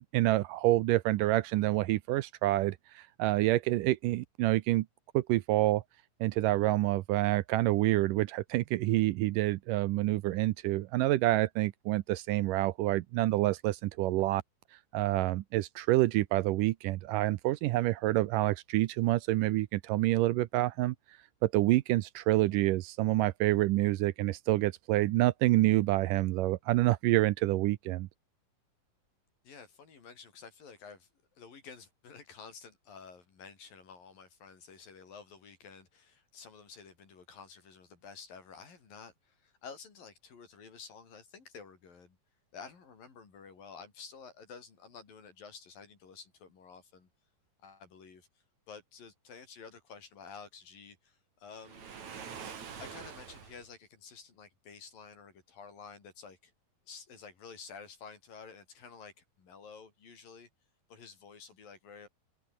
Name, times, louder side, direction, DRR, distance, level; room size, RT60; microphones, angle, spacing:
voice 1, 0.1-4.9 5.1-5.8 6.2-14.4 14.9-21.0 21.4-28.1, right 17 dB, 75° right, 2.2 m, -27 dB
voice 2, 29.4-31.1 31.4-42.2 42.5-47.1 47.6-48.3 48.7-51.9 52.8-56.5 56.9-60.5 60.9-62.1, left 5 dB, 75° left, 6.6 m, -51 dB
Waves surf, 51.6-53.7, right 7 dB, 55° right, 4.0 m, -45 dB
omnidirectional pair, 4.1 m